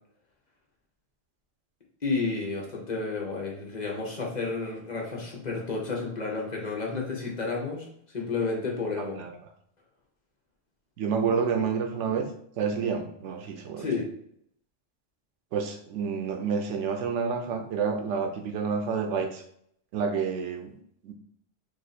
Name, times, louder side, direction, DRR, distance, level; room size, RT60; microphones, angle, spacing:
voice 1, 2.0-7.9 8.1-9.2 13.8-14.1, left 4 dB, 40° left, -1 dB, 0.9 m, -31 dB
voice 2, 9.0-9.3 11.0-12.3 12.6-13.9 15.5-19.4 19.9-20.8 21.0-21.1, right 6 dB, 90° right, 5 dB, 0.9 m, -29 dB
3.1 x 2.6 x 4.1 m, 0.67 s
omnidirectional pair, 1.2 m